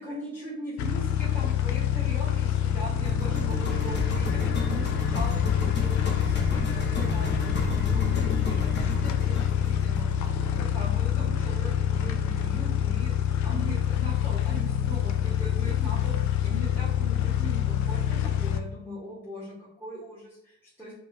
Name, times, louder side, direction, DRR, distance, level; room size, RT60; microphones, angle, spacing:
voice 1, 0.0-10.3 10.6-20.9, equal, 5° left, -10 dB, 1.3 m, -40 dB
sound 1, 0.8-18.6, left 10 dB, 70° left, 0.5 m, -26 dB
sound 2, 3.0-11.2, left 2 dB, 35° left, 0.9 m, -32 dB
4.6 x 2.5 x 2.5 m, 0.79 s
cardioid pair, 90°, 30 cm